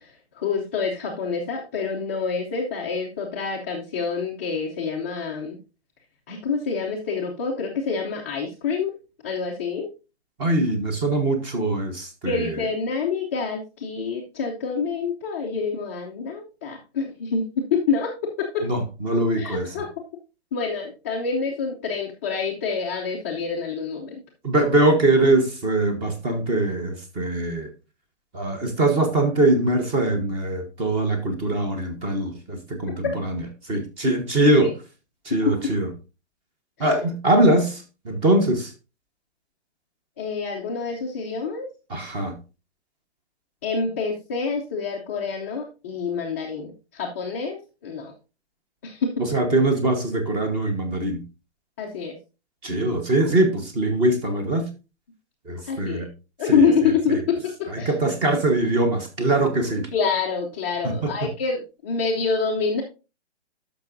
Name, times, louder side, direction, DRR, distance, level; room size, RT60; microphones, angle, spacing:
voice 1, 0.0-5.6 6.3-8.9 9.2-9.9 12.2-18.6 19.4-19.9 20.5-24.2 34.6-34.7 35.5-35.7 36.8-36.9 40.2-41.7 43.6-48.1 48.8-49.1 51.8-52.2 55.7-56.1 56.4-57.9 59.9-62.8, left 5 dB, 10° left, 0.5 m, -27 dB
voice 2, 10.4-12.6 18.6-19.7 24.4-27.7 28.3-34.7 35.2-35.9 36.8-38.7 41.9-42.4 49.2-51.2 52.6-54.7 55.5-56.1 56.5-56.7 57.1-57.2 57.7-59.9 60.8-61.1, right 2 dB, 15° right, 1.0 m, -22 dB
11.5 x 6.0 x 2.6 m
hypercardioid pair, 155°, 35 cm